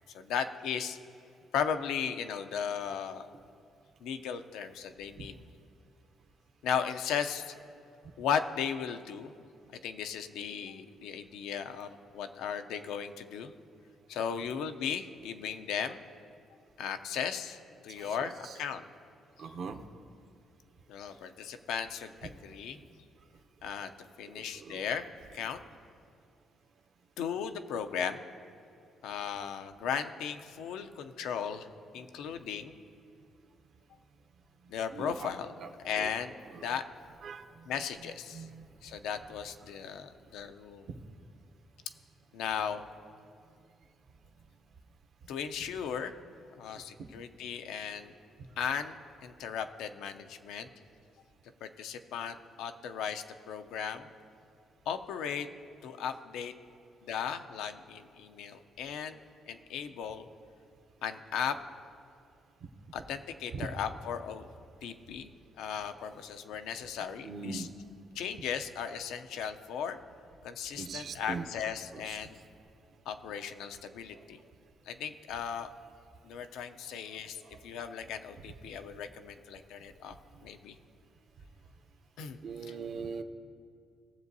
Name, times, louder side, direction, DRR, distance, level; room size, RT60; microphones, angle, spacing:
voice 1, 0.1-1.0 1.5-3.3 4.0-5.4 6.6-7.5 8.2-9.3 9.8-13.5 14.1-16.0 16.8-18.9 20.9-22.8 23.6-23.9 24.2-25.1 25.3-25.6 27.2-28.2 29.0-31.7 31.9-32.8 34.7-35.5 35.8-36.8 37.7-38.5 38.8-40.9 42.3-42.8 45.3-46.1 46.6-48.1 48.6-50.7 51.6-54.1 54.9-55.5 55.8-56.5 57.1-59.2 59.5-60.3 61.0-61.6 62.9-64.5 64.8-65.3 65.6-67.7 68.2-70.0 70.4-72.4 73.1-74.4 74.9-75.7 76.2-80.2 80.4-80.7 82.2-82.4, left 7 dB, 90° left, 8 dB, 0.5 m, -36 dB
voice 2, 18.0-18.6 19.4-19.8 24.5-24.8 34.9-35.3 35.6-35.7 36.0-36.1 36.5-36.7 37.2-37.5 38.3-38.7 47.0-47.1 63.5-63.7 67.2-67.7 70.8-71.5 71.9-72.2 77.1-77.6 82.4-83.2, right 5 dB, 60° right, 7 dB, 0.7 m, -41 dB
18.5 x 7.3 x 2.7 m, 2.5 s
cardioid pair, 90°, 0 cm